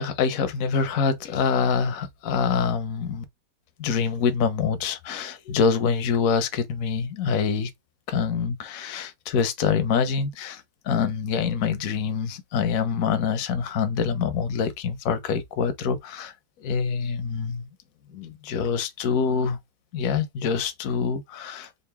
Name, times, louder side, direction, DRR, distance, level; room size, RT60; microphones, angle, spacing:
voice 1, 0.0-3.2 3.8-7.7 8.1-16.3 16.6-17.7 18.1-19.6 19.9-21.7, left 6 dB, 60° left, 1.0 m, -25 dB
3.9 x 2.6 x 3.4 m
omnidirectional pair, 2.0 m